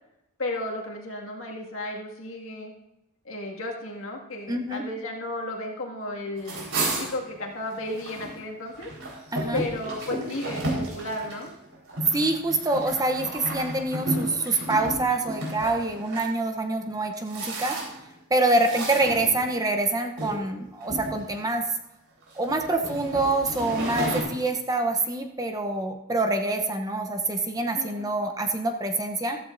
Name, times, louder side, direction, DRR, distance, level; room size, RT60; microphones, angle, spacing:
voice 1, 0.4-2.7 3.2-6.6 7.0-8.9 9.5-11.5 27.8-28.1, left 1 dB, 65° left, 0 dB, 2.1 m, -34 dB
voice 2, 4.5-4.8 9.3-9.6 12.1-17.8 18.3-21.7 22.3-29.4, right 2 dB, 15° right, 5 dB, 0.8 m, -26 dB
sound 1, 6.4-8.3 8.7-16.3 16.9-18.1 18.5-19.7 20.2-20.4 20.8-21.6 22.2-24.2, right 1 dB, 65° right, 4.4 m, -33 dB
14.5 x 13.5 x 2.6 m, 0.89 s
head